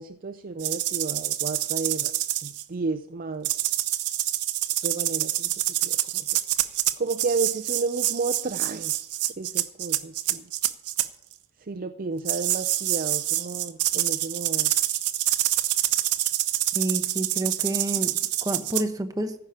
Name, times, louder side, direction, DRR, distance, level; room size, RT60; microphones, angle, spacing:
voice 1, 0.0-2.1 2.4-3.7 4.8-5.5 5.8-6.3 6.6-9.0 9.4-10.5 11.6-14.7, right 4 dB, 40° right, 9 dB, 0.5 m, -32 dB
sound 1, 0.6-2.6 3.4-11.1 12.3-18.8, right 14 dB, 90° right, 0.7 m, -26 dB
voice 2, 16.7-18.1 18.4-19.3, right 1 dB, 15° right, 6 dB, 0.9 m, -28 dB
14.5 x 5.8 x 8.8 m, 0.75 s
head